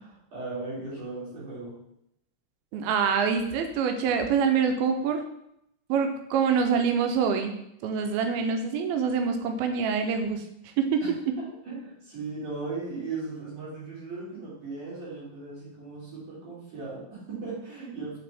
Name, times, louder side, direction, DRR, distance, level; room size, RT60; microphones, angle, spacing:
voice 1, 0.0-1.7 11.0-18.2, right 3 dB, 55° right, -9 dB, 3.9 m, -37 dB
voice 2, 2.7-5.2 5.9-7.5 7.8-10.4 10.8-11.0, right 6 dB, 90° right, 6 dB, 2.6 m, -25 dB
6.8 x 4.4 x 3.5 m, 0.77 s
omnidirectional pair, 4.3 m